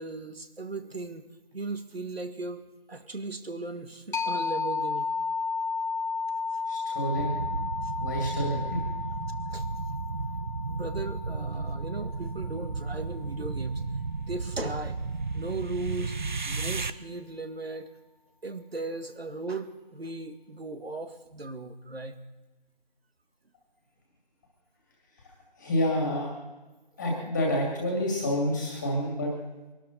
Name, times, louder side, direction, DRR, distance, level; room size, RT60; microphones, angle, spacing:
voice 1, 0.0-2.6 2.9-5.1 6.5-6.6 7.8-7.9 9.5-9.6 10.7-13.9 14.2-15.0 15.3-16.1 16.4-17.9 18.4-22.1, right 3 dB, 90° right, 8 dB, 1.9 m, -37 dB
sound 1, 4.1-13.5, left 4 dB, 60° left, 1.1 m, -34 dB
voice 2, 6.6-7.4 8.0-8.8 25.1-26.3 27.0-29.3, equal, 10° left, -2 dB, 2.2 m, -29 dB
sound 2, 7.1-16.9, right 4 dB, 55° right, 0.7 m, -34 dB
23.0 x 12.5 x 4.2 m, 1.2 s
figure-of-eight pair, 170°, 29 cm